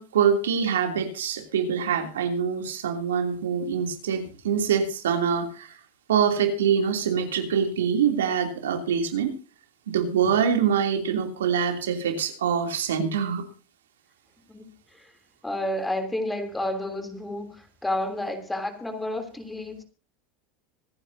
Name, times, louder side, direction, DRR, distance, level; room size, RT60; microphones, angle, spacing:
voice 1, 0.0-5.8 6.1-9.3 9.9-13.4, right 7 dB, 85° right, 6 dB, 3.0 m, -24 dB
voice 2, 14.5-15.1 15.4-19.8, left 1 dB, 10° left, 8 dB, 3.2 m, -31 dB
25.5 x 9.9 x 2.8 m, 0.36 s
hypercardioid pair, 95°, 0 cm